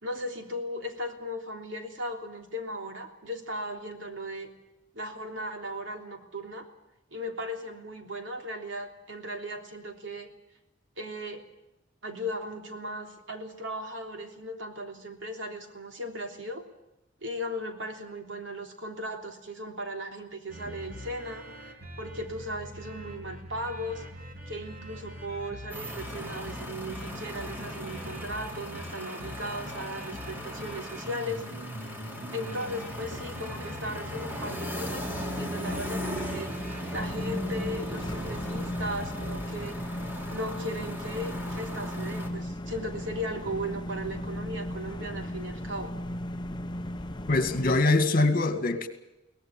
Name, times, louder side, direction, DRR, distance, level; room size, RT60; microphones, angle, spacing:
voice 1, 0.0-4.5 4.9-6.7 7.1-10.3 11.0-11.4 12.0-16.6 17.2-24.0 24.5-31.5 32.3-36.5 36.9-40.0 40.3-45.9, equal, 65° right, 4 dB, 3.3 m, -37 dB
sound 1, 20.5-39.4, equal, 45° right, 3.8 m, -42 dB
sound 2, 25.7-42.3, equal, 10° right, 3.1 m, -38 dB
sound 3, 37.0-47.8, equal, 20° left, 0.9 m, -36 dB
voice 2, 47.3-48.9, left 2 dB, 45° left, 8 dB, 2.1 m, -23 dB
23.0 x 18.0 x 9.0 m, 0.93 s
head